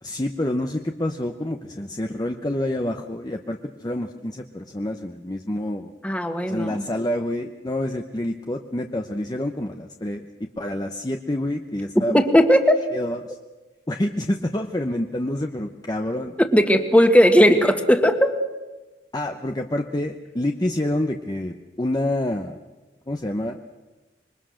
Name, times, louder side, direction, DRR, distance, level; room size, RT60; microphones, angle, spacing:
voice 1, 0.0-5.9 6.5-10.3 10.6-12.2 12.9-13.4 13.9-16.4 19.1-22.6 23.1-23.6, left 1 dB, 25° left, 4 dB, 0.9 m, -27 dB
voice 2, 6.0-6.8 12.1-12.7 16.5-18.3, equal, 10° left, 6 dB, 1.7 m, -17 dB
26.5 x 22.5 x 6.4 m, 1.1 s
head